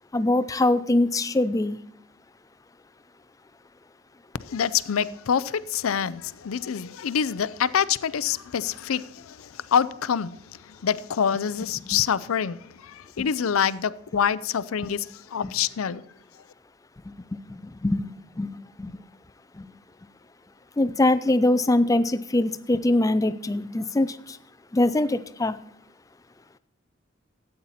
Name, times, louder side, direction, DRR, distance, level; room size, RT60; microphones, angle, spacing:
voice 1, 0.1-1.8 11.9-12.0 13.2-13.3 15.4-15.5 17.1-19.0 19.5-19.7 20.8-24.4 24.7-25.6, left 1 dB, 15° left, 0.4 m, -23 dB
voice 2, 4.4-10.4 10.7-16.0, left 7 dB, 85° left, 0.5 m, -26 dB
13.0 x 8.7 x 4.2 m
head